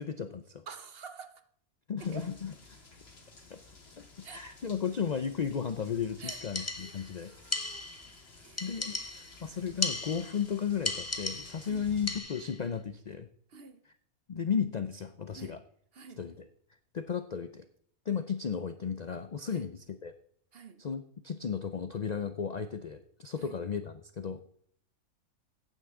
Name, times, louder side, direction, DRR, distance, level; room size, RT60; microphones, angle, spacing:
voice 1, 0.0-0.6 1.9-2.5 3.5-3.6 4.0-7.3 8.6-13.3 14.3-15.6 16.2-16.5 16.9-17.7 18.1-20.1 20.8-24.5, left 7 dB, 70° left, 0.4 m, -34 dB
voice 2, 0.7-1.4 2.0-2.3 4.2-4.4 6.2-7.8 8.4-8.8 11.6-11.9 13.5-13.8 15.3-15.6 15.9-16.2 19.5-19.7 20.5-20.8 23.4-23.6, right 5 dB, 50° right, 0.9 m, -49 dB
sound 1, 2.0-12.2, left 3 dB, 45° left, 2.1 m, -55 dB
sound 2, 6.3-7.1 7.5-8.1 8.6-9.4 9.8-10.5 10.8-11.7 12.1-12.6, left 2 dB, 20° left, 0.5 m, -36 dB
15.0 x 9.1 x 3.7 m
omnidirectional pair, 1.5 m